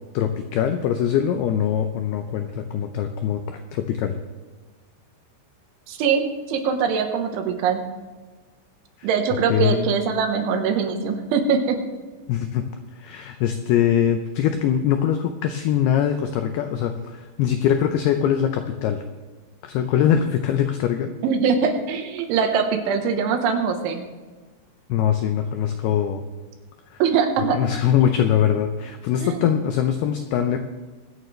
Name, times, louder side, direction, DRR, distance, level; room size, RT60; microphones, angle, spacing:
voice 1, 0.1-4.2 9.0-9.1 9.5-9.9 12.3-12.6 13.0-19.0 19.6-21.1 24.9-26.2 26.9-27.0 27.5-30.6, left 9 dB, 85° left, 6 dB, 2.2 m, -22 dB
voice 2, 5.9-7.8 9.0-11.8 21.2-24.0 27.0-27.6 29.2-29.5, right 6 dB, 85° right, 5 dB, 3.6 m, -22 dB
24.0 x 9.1 x 3.2 m, 1.3 s
omnidirectional pair, 5.4 m